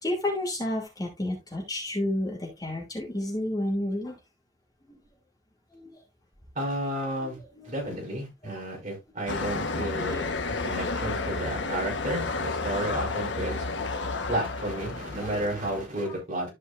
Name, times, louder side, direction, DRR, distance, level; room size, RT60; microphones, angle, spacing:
voice 1, 0.0-4.2 4.9-5.0 5.7-6.0 7.2-8.1 8.4-8.6 9.7-11.9 15.1-15.6 16.0-16.2, left 1 dB, 20° left, 2.8 m, -33 dB
voice 2, 6.6-7.4 7.7-10.3 10.6-13.6 14.3-16.5, right 1 dB, 40° right, 5.5 m, -32 dB
sound 1, 9.3-15.8, left 3 dB, 70° left, 1.2 m, -31 dB
14.0 x 5.3 x 2.5 m
head